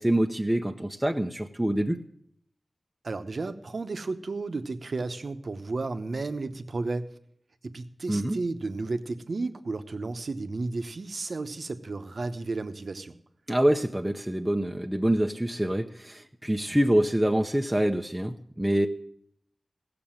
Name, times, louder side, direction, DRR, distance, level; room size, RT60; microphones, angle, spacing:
voice 1, 0.0-2.0 8.1-8.4 13.5-18.9, right 1 dB, 10° right, 3 dB, 0.7 m, -25 dB
voice 2, 3.0-7.1 7.6-13.1, right 3 dB, 70° right, 9 dB, 0.9 m, -33 dB
16.0 x 6.8 x 8.8 m, 0.67 s
wide cardioid pair, 60°, 0 cm